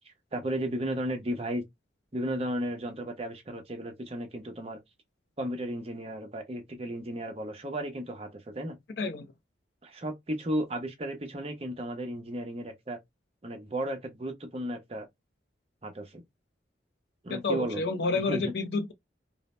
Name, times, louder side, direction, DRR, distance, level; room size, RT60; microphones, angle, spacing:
voice 1, 0.1-1.6 2.1-4.8 5.4-8.8 9.8-13.0 13.4-15.1 15.8-16.2 17.2-17.8 18.1-18.5, right 1 dB, 35° right, 0.6 m, -34 dB
voice 2, 17.3-18.9, left 3 dB, 65° left, 0.5 m, -29 dB
2.6 x 2.0 x 3.1 m
head